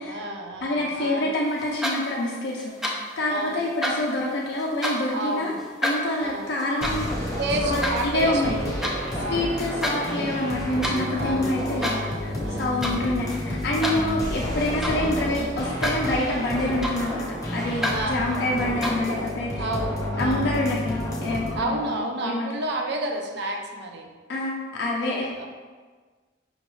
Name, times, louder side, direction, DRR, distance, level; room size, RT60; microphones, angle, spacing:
voice 1, 0.0-1.3 3.3-3.6 5.1-5.7 6.2-6.5 7.4-9.6 11.2-12.8 15.3-15.6 17.9-18.4 19.6-20.5 21.5-24.1 25.0-25.5, right 1 dB, 60° right, 3 dB, 0.5 m, -31 dB
voice 2, 0.6-5.5 5.8-7.1 7.6-9.0 9.3-17.3 17.5-19.6 20.2-22.5 24.3-25.3, left 1 dB, 55° left, -3 dB, 0.4 m, -27 dB
sound 1, 1.6-2.3 2.6-3.2 3.5-5.1 5.6-9.0 9.4-10.0 10.3-11.0 11.6-12.2 12.4-13.0 13.3-15.2 15.6-16.1 16.4-17.3 17.6-18.0 18.6-19.1, equal, ahead, 0.4 m, -30 dB
sound 2, 6.8-21.6, left 1 dB, 20° left, 0.7 m, -30 dB
5.0 x 2.3 x 3.0 m, 1.4 s
head